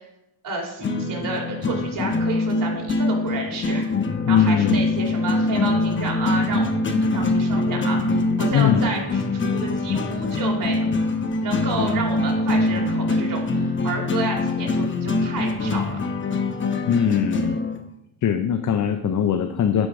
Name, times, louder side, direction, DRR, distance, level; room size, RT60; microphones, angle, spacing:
voice 1, 0.4-3.9 4.3-8.0 8.4-10.8 11.4-16.0, right 3 dB, 50° right, 0 dB, 3.5 m, -30 dB
sound 1, 0.8-17.8, left 2 dB, 30° left, 1.0 m, -23 dB
voice 2, 4.3-4.9 8.5-8.9 16.9-17.6 18.2-19.9, left 8 dB, 45° left, 7 dB, 0.7 m, -21 dB
11.5 x 5.0 x 4.9 m, 0.83 s
cardioid pair, 100°, 41 cm